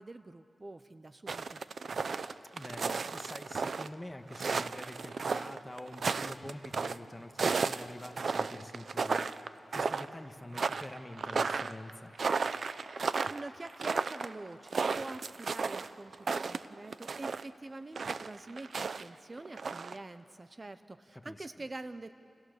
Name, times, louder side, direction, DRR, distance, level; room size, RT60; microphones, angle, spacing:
voice 1, 0.0-1.6 13.3-22.2, right 2 dB, 35° right, 11 dB, 0.8 m, -46 dB
sound 1, 1.3-3.9 4.3-7.0 7.4-9.5 9.7-10.2 10.5-17.4 18.0-19.0 19.4-19.9, right 4 dB, 70° right, 0.7 m, -33 dB
voice 2, 2.5-9.3 9.7-12.1 21.2-21.5, left 1 dB, 15° left, 6 dB, 1.6 m, -46 dB
30.0 x 29.0 x 6.8 m, 2.9 s
cardioid pair, 60°, 0 cm